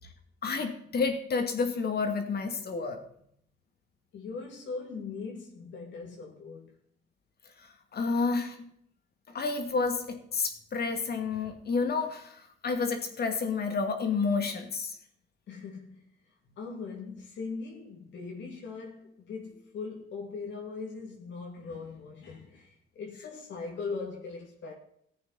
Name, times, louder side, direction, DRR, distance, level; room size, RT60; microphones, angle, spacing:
voice 1, 0.4-3.0 7.9-8.6 9.3-14.9, left 4 dB, 55° left, 2.4 m, -30 dB
voice 2, 4.1-6.7 15.5-16.0 16.6-24.7, left 4 dB, 70° left, 2.5 m, -40 dB
15.0 x 8.6 x 4.2 m
cardioid pair, 90°, 20 cm